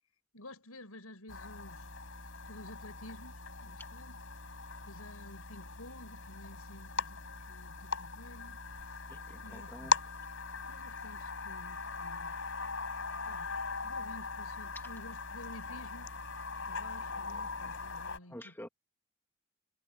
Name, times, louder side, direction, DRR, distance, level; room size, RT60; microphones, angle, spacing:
voice 1, 0.3-1.9 2.5-4.2 4.8-7.2 7.5-8.6 8.9-9.0 9.3-10.0 10.7-12.4 13.3-16.1 16.7-18.5, left 1 dB, 80° left, 6.9 m, -52 dB
sound 1, 1.3-18.2, left 4 dB, 60° left, 5.1 m, -40 dB
voice 2, 9.1-9.9 18.3-18.7, left 1 dB, 10° left, 1.8 m, -48 dB
head